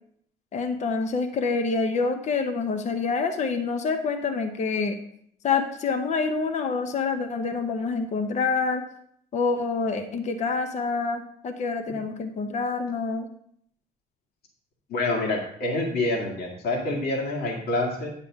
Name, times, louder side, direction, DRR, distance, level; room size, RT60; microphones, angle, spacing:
voice 1, 0.5-5.0 5.4-8.8 9.3-13.3, left 4 dB, 45° left, 7 dB, 0.9 m, -27 dB
voice 2, 14.9-18.1, left 2 dB, 65° left, 0 dB, 2.0 m, -27 dB
9.9 x 6.9 x 3.6 m, 0.67 s
cardioid pair, 110°, 17 cm